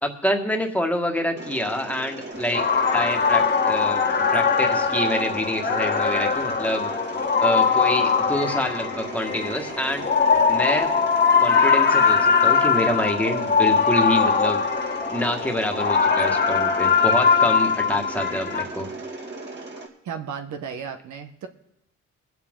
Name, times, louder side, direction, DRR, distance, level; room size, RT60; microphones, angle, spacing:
voice 1, 0.0-2.6 2.9-4.1 4.3-6.9 7.4-10.1 10.5-10.9 11.4-14.6 15.1-18.9, equal, 5° left, 2 dB, 1.8 m, -26 dB
Mechanisms, 1.4-19.9, right 2 dB, 35° right, 2.4 m, -37 dB
sound 1, 2.4-18.6, left 5 dB, 35° left, 1.6 m, -21 dB
voice 2, 20.0-21.5, right 7 dB, 70° right, 7 dB, 1.2 m, -34 dB
22.0 x 7.8 x 3.8 m, 0.79 s
cardioid pair, 90°, 30 cm